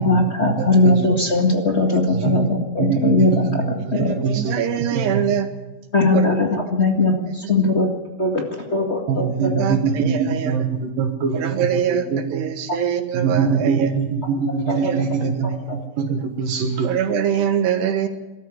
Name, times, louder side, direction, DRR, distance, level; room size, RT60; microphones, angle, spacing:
voice 1, 0.0-4.1 5.9-7.9 8.2-9.6 14.7-15.2 15.7-15.8, left 2 dB, 50° left, 2 dB, 0.7 m, -20 dB
voice 2, 2.8-4.5 4.9-5.2 9.1-12.4 13.1-16.9, right 5 dB, 65° right, 5 dB, 3.0 m, -23 dB
voice 3, 3.8-5.5 6.1-6.3 9.3-10.6 11.3-13.9 14.6-15.3 15.6-15.7 16.8-18.1, right 8 dB, 90° right, 6 dB, 3.8 m, -24 dB
21.5 x 13.5 x 9.7 m, 1.1 s
omnidirectional pair, 4.6 m